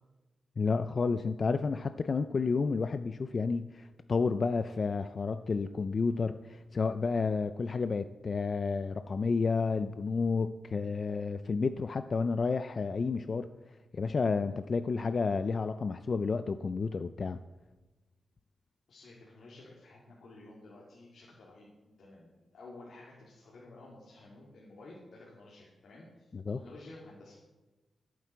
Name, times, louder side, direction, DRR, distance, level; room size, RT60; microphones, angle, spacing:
voice 1, 0.6-13.5 13.9-17.4 26.3-26.6, left 4 dB, 45° left, 11 dB, 0.4 m, -31 dB
voice 2, 18.9-27.5, left 2 dB, 70° left, -4 dB, 2.6 m, -52 dB
14.5 x 8.7 x 4.6 m, 1.1 s
cardioid pair, 95°, 0 cm